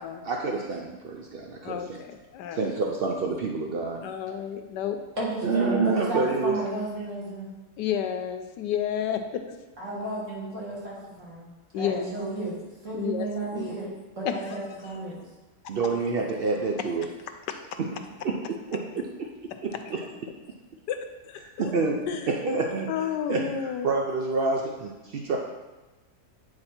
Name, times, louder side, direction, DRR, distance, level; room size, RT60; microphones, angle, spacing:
voice 1, 0.2-2.0 2.5-4.0 5.4-6.6 15.7-17.1 17.8-17.9 18.2-19.3 19.6-20.0 21.6-22.9 23.3-23.4 23.8-25.4, right 3 dB, 75° right, 0 dB, 0.5 m, -28 dB
voice 2, 1.6-2.7 4.0-5.0 7.8-9.6 11.7-12.1 12.9-13.3 13.5-13.7 14.2-14.4 17.5-17.6 20.9-21.0 21.3-21.8 22.1-22.3 22.9-23.9, left 9 dB, 90° left, 7 dB, 1.3 m, -31 dB
voice 3, 5.2-7.5 9.8-11.5 11.7-12.5 12.8-13.9 14.2-15.2, right 2 dB, 45° right, -7 dB, 2.6 m, -32 dB
8.7 x 4.5 x 4.3 m, 1.1 s
omnidirectional pair, 1.8 m